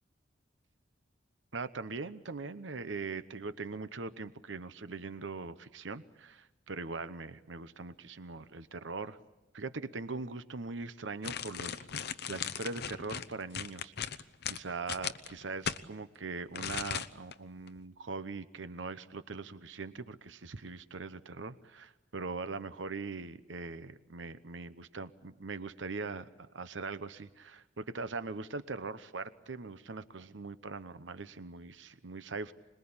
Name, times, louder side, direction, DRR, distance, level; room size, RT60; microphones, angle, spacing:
voice 1, 1.5-9.2 9.5-13.9 14.5-32.5, right 3 dB, 85° right, 13 dB, 0.9 m, -41 dB
sound 1, 11.2-15.8 16.5-17.3 17.7-17.8, left 8 dB, 60° left, 0.8 m, -37 dB
26.5 x 21.0 x 8.8 m, 1.0 s
head